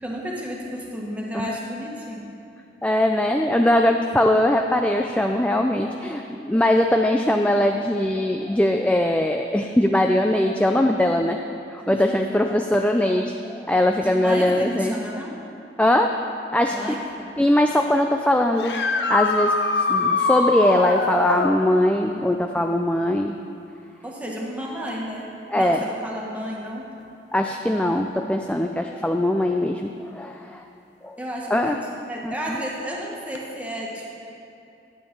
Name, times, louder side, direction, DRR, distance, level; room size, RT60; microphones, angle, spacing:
voice 1, 0.0-2.3 11.9-12.2 13.9-15.4 16.7-17.4 24.0-25.3 25.5-26.9 31.2-34.2, equal, 10° right, -3 dB, 1.6 m, -32 dB
voice 2, 2.8-11.4 11.7-14.9 15.8-16.1 16.5-16.8 17.4-23.4 25.5-25.8 27.3-30.6 31.0-31.2 31.5-31.7 32.2-32.3, left 1 dB, 5° left, 3 dB, 0.3 m, -21 dB
sound 1, 18.6-21.6 24.9-25.0 27.0-27.1 33.3-33.4, left 3 dB, 75° left, 0.8 m, -23 dB
11.5 x 8.6 x 5.4 m, 2.7 s
head